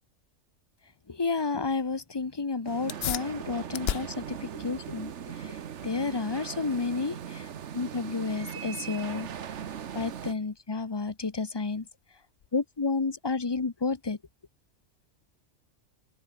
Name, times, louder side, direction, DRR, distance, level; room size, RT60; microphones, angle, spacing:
voice 1, 1.1-7.5 7.7-9.3 9.9-11.9 12.5-14.2, left 4 dB, 25° left, 0.8 m, -31 dB
sound 1, 2.6-10.3, right 8 dB, 70° right, 1.3 m, -39 dB
sound 2, 2.9-12.8, left 11 dB, 60° left, 0.8 m, -41 dB
omnidirectional pair, 1.3 m